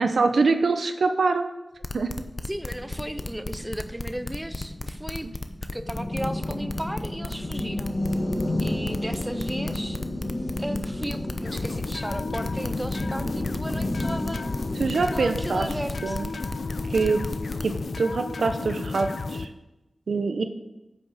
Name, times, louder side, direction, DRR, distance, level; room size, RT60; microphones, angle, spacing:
voice 1, 0.0-1.5 1.9-2.1 5.2-5.3 14.8-15.7 16.0-16.3 16.9-17.2 17.6-19.5 20.1-20.4, right 4 dB, 85° right, 8 dB, 0.8 m, -24 dB
sound 1, 1.8-17.8, left 2 dB, 40° left, 0.7 m, -34 dB
sound 2, 2.5-18.0, left 1 dB, 55° left, 2.2 m, -33 dB
voice 2, 2.5-5.3 5.7-7.9 8.6-10.0 10.6-14.5 15.1-16.2, equal, 10° right, 10 dB, 0.6 m, -35 dB
sound 3, 11.4-19.5, left 3 dB, 80° left, 0.6 m, -33 dB
9.7 x 6.4 x 6.5 m, 0.97 s
wide cardioid pair, 105°, 0 cm